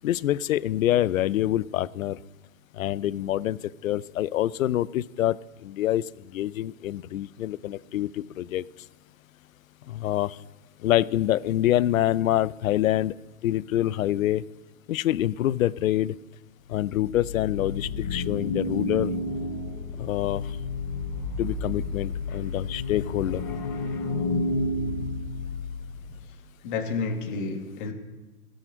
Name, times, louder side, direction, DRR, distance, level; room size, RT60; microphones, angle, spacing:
voice 1, 0.0-2.2 2.8-3.6 3.8-5.4 5.6-6.0 6.3-8.6 9.9-10.3 10.8-13.1 13.4-14.4 14.9-16.1 16.7-19.1 20.0-20.4 21.4-23.4, left 13 dB, 65° left, 20 dB, 0.5 m, -26 dB
sound 1, 17.1-26.1, left 2 dB, 15° left, 0.5 m, -31 dB
voice 2, 26.6-27.9, left 4 dB, 35° left, 3 dB, 1.8 m, -30 dB
16.5 x 6.4 x 6.2 m, 1.2 s
hypercardioid pair, 155°, 43 cm